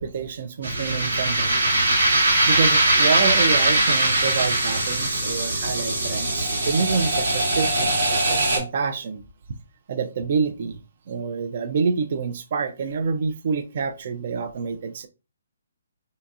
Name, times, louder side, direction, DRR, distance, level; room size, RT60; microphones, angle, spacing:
voice 1, 0.0-1.6 2.5-9.2 9.9-10.8 11.1-15.1, right 5 dB, 50° right, 0.4 m, -27 dB
sound 1, 0.6-8.6, right 2 dB, 80° right, 1.2 m, -21 dB
2.8 x 2.6 x 2.3 m
hypercardioid pair, 150°, 0 cm